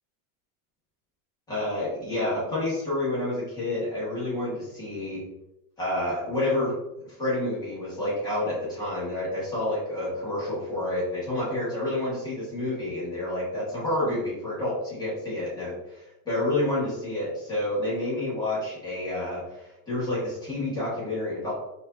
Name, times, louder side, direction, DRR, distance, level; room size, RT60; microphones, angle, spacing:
voice 1, 1.5-5.2 5.8-21.6, left 1 dB, 10° left, -9 dB, 1.3 m, -29 dB
4.4 x 2.9 x 3.8 m, 0.90 s
supercardioid pair, 180°, 43 cm